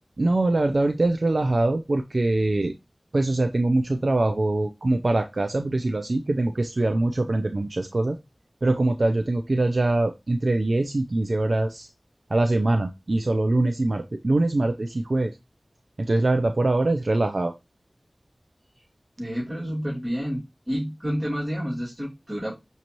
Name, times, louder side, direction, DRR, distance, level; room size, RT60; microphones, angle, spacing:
voice 1, 0.2-2.7 3.1-8.2 8.6-11.9 12.3-15.3 16.0-17.5, right 2 dB, 75° right, 6 dB, 0.5 m, -23 dB
voice 2, 19.2-22.6, equal, 35° right, -7 dB, 2.4 m, -29 dB
6.2 x 2.7 x 3.0 m, 0.22 s
wide cardioid pair, 40°, 0 cm